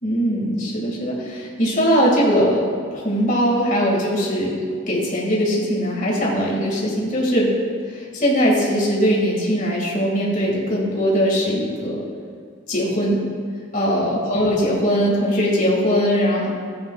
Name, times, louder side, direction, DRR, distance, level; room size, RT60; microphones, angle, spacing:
voice 1, 0.0-2.6 2.9-4.5 4.9-7.5 8.0-12.0 12.7-13.2 13.7-16.5, equal, 40° left, -4 dB, 2.2 m, -20 dB
13.5 x 8.7 x 2.4 m, 2.2 s
head